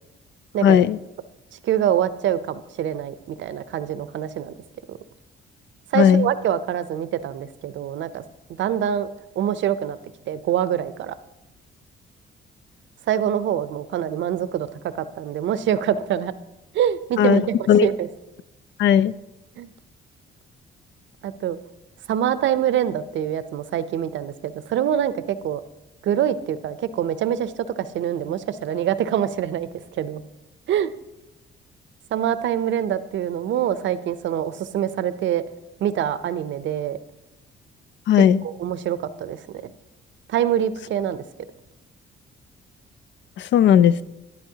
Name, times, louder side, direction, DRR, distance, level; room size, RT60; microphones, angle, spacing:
voice 1, 0.6-1.0 5.9-6.3 17.2-17.4 17.7-17.9 18.8-19.1 38.1-38.4 43.4-44.0, left 9 dB, 65° left, 17 dB, 0.4 m, -16 dB
voice 2, 1.6-4.5 4.9-5.0 5.9-8.2 8.6-9.1 9.4-10.0 10.3-11.1 13.1-14.7 15.0-16.3 16.7-18.1 19.6-19.7 21.2-21.6 22.1-25.6 26.0-27.5 27.9-29.7 30.0-30.2 30.7-30.9 32.1-35.4 35.8-37.0 38.4-39.7 40.3-41.2, right 10 dB, 70° right, 14 dB, 0.6 m, -25 dB
11.5 x 11.0 x 2.8 m, 0.97 s
cardioid pair, 90°, 20 cm